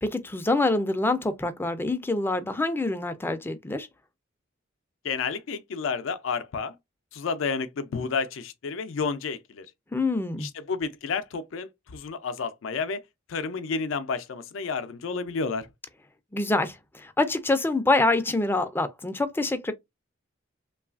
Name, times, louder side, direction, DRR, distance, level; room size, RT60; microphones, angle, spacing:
voice 1, 0.0-3.9 9.9-10.5 16.3-19.7, left 2 dB, 10° left, 0.3 m, -26 dB
voice 2, 5.0-6.7 7.1-9.7 10.4-13.0 13.3-15.7, left 5 dB, 75° left, 0.4 m, -31 dB
3.1 x 2.3 x 2.3 m
head